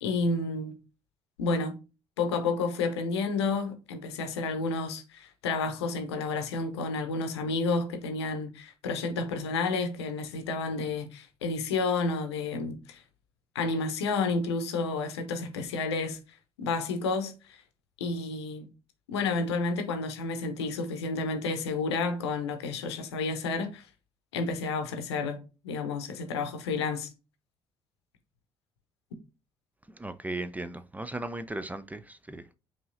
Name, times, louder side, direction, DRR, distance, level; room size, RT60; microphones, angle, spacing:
voice 1, 0.0-0.8 1.4-1.8 2.2-13.0 13.5-16.2 16.6-17.6 18.0-18.7 19.1-23.8 24.3-27.1, left 3 dB, 75° left, 0.7 m, -30 dB
voice 2, 30.0-32.5, right 2 dB, 10° right, 0.4 m, -37 dB
5.4 x 2.8 x 2.5 m
figure-of-eight pair, 50°, 14 cm